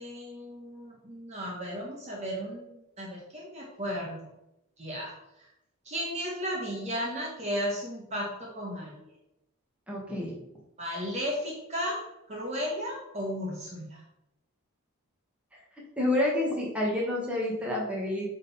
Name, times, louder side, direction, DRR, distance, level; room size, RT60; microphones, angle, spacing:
voice 1, 0.0-4.3 4.8-5.1 5.8-8.9 10.8-12.0 12.3-14.0, equal, 30° right, -2 dB, 1.2 m, -34 dB
voice 2, 9.9-10.3 16.0-18.3, left 1 dB, 5° right, -4 dB, 1.5 m, -28 dB
8.7 x 3.8 x 4.2 m, 0.84 s
head